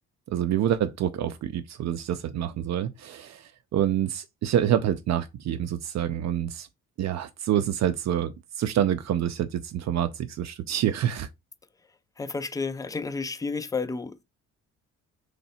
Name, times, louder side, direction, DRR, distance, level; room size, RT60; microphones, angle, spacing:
voice 1, 0.3-6.7 7.0-11.3, right 10 dB, 60° right, 0.5 m, -27 dB
voice 2, 12.2-14.2, left 4 dB, 10° left, 0.4 m, -31 dB
3.2 x 2.7 x 4.2 m
cardioid pair, 90°, 30 cm